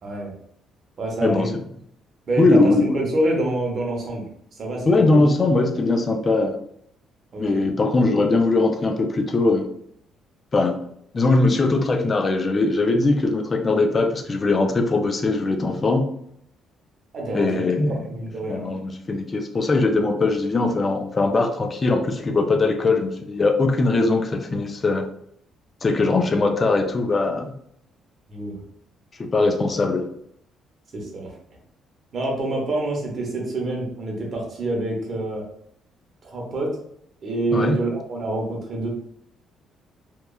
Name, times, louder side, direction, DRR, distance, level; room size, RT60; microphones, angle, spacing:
voice 1, 0.0-0.3 1.0-1.5 2.3-4.3 4.6-4.9 5.1-5.2 7.3-7.6 17.1-17.5 18.1-18.7 28.3-28.6 30.9-31.3 32.1-35.4 36.2-36.8 37.2-38.9, right 2 dB, 40° right, -1 dB, 0.7 m, -26 dB
voice 2, 1.2-1.5 2.4-3.0 4.9-6.6 7.4-9.7 10.5-10.7 11.1-16.0 17.3-18.0 18.5-25.1 25.8-27.5 29.2-30.1 37.5-37.8, left 3 dB, 25° left, 5 dB, 0.3 m, -20 dB
2.9 x 2.2 x 2.2 m, 0.69 s
cardioid pair, 160°, 0 cm